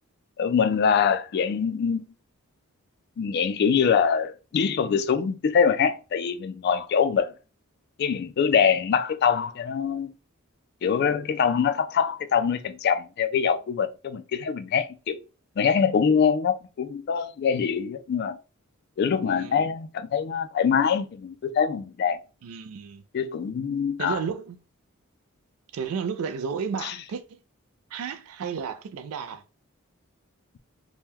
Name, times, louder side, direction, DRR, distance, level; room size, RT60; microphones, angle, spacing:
voice 1, 0.4-2.0 3.2-7.3 8.0-10.1 10.8-15.2 15.6-18.4 19.0-22.2 23.1-24.2 26.8-26.9, left 6 dB, 50° left, 0.3 m, -24 dB
voice 2, 19.4-19.7 22.4-23.0 24.0-24.6 25.7-27.2 27.9-29.4, right 6 dB, 75° right, 0.3 m, -32 dB
2.9 x 2.1 x 3.5 m
head